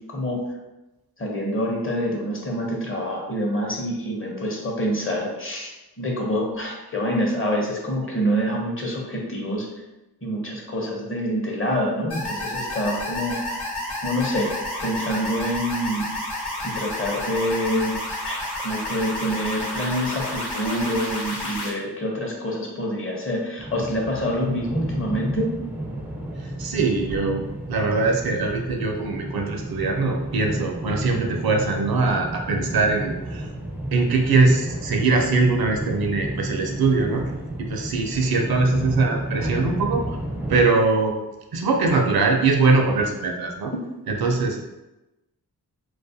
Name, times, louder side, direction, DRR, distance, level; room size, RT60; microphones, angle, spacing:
voice 1, 0.1-0.4 1.2-5.7 6.0-9.7 10.2-13.6 14.0-14.5 14.8-16.1 16.6-18.0 18.2-25.6, equal, 30° left, -1 dB, 0.7 m, -26 dB
sound 1, 12.1-21.7, left 1 dB, 75° left, 1.0 m, -30 dB
sound 2, 23.6-40.6, right 1 dB, 5° right, 0.4 m, -32 dB
voice 2, 26.4-27.4 27.7-33.5 33.9-37.3 37.6-40.0 40.5-41.1 41.5-43.7 44.1-44.6, right 3 dB, 65° right, 3 dB, 0.5 m, -22 dB
2.3 x 2.1 x 2.6 m, 1.0 s
cardioid pair, 40°, 39 cm